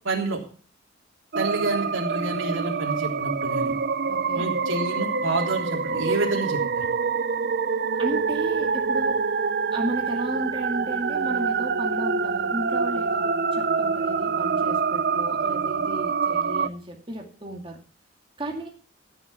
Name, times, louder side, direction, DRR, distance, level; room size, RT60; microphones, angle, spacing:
voice 1, 0.0-0.4 1.3-3.7 4.3-6.8, right 2 dB, 90° right, 0 dB, 3.4 m, -28 dB
sound 1, 1.3-16.7, right 5 dB, 50° right, 0.6 m, -26 dB
voice 2, 4.1-4.5 8.0-9.2 9.7-17.8 18.4-18.7, right 1 dB, 25° right, 1 dB, 2.2 m, -34 dB
14.0 x 6.6 x 6.9 m, 0.40 s
head